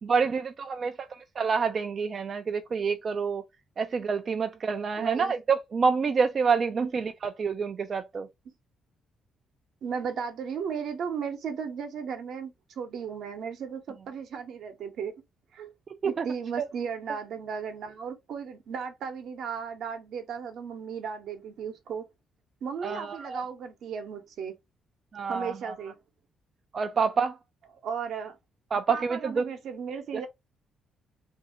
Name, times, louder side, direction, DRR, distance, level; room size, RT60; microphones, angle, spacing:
voice 1, 0.0-3.4 3.8-8.3 16.0-16.2 16.6-16.7 22.8-23.4 25.1-25.8 26.7-27.4 28.7-29.5 30.1-30.3, right 5 dB, 45° right, 0.4 m, -28 dB
voice 2, 5.0-5.3 6.8-6.9 9.8-15.1 15.5-15.7 16.0-22.0 22.6-24.5 25.3-26.0 27.8-28.4 28.9-30.3, right 6 dB, 70° right, 0.9 m, -35 dB
2.7 x 2.6 x 3.9 m
cardioid pair, 90°, 0 cm